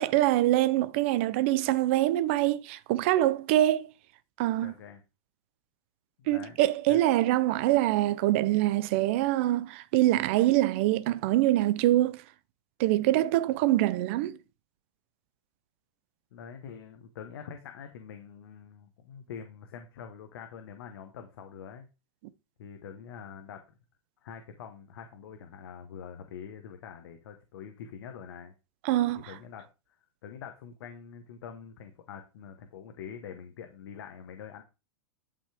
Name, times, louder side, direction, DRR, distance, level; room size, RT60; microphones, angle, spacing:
voice 1, 0.0-3.9 4.4-4.7 6.3-12.2 12.8-14.4 28.8-29.2, right 15 dB, 25° right, 0.4 m, -24 dB
voice 2, 4.6-5.0 6.2-6.6 6.9-7.0 16.3-21.9 22.6-23.6 24.2-28.5 29.3-30.0 30.2-34.6, left 7 dB, 45° left, 1.2 m, -45 dB
11.0 x 5.7 x 3.4 m
supercardioid pair, 180°, 16 cm